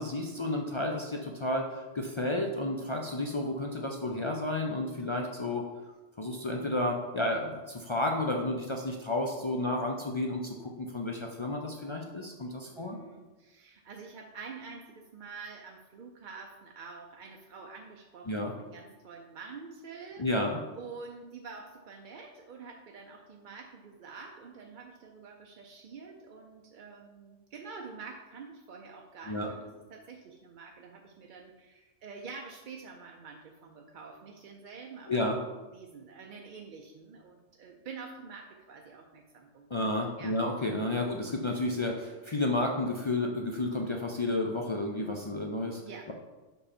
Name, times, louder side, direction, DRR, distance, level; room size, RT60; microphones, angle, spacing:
voice 1, 0.0-5.7 6.2-13.0 18.3-18.5 20.2-20.6 29.3-29.5 35.1-35.4 39.7-45.8, left 2 dB, 50° left, 1 dB, 0.3 m, -31 dB
voice 2, 12.7-20.3 20.8-35.4 35.7-39.9 40.2-40.4 45.8-46.1, right 5 dB, 55° right, 1 dB, 0.6 m, -47 dB
5.6 x 5.3 x 4.2 m, 1.2 s
omnidirectional pair, 1.3 m